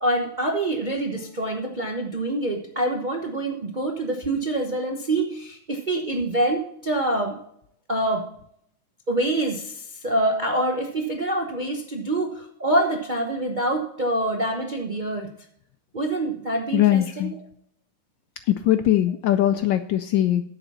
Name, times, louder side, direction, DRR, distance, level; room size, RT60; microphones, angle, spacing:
voice 1, 0.0-7.4 7.9-8.2 9.1-15.3 15.9-17.4, right 1 dB, 40° right, 2 dB, 0.6 m, -26 dB
voice 2, 16.7-17.3 18.5-20.4, left 12 dB, 75° left, 11 dB, 1.1 m, -21 dB
10.0 x 8.1 x 4.1 m, 0.71 s
omnidirectional pair, 2.4 m